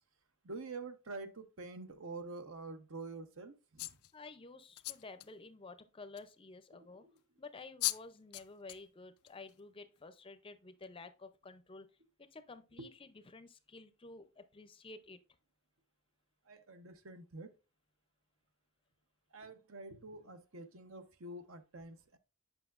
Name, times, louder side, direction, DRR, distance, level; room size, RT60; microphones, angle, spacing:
voice 1, 0.4-3.9 6.9-7.1 12.8-12.9 16.5-17.5 19.3-22.2, right 3 dB, 65° right, 0.8 m, -47 dB
sound 1, 3.8-4.1 4.8-5.3 6.2-6.3 7.4-7.5 7.8-8.0 8.3-8.8 9.3-9.5, left 19 dB, 85° left, 0.4 m, -37 dB
voice 2, 4.1-7.0 7.4-11.9 12.2-15.2, left 3 dB, 25° left, 0.5 m, -52 dB
8.0 x 5.5 x 2.4 m
head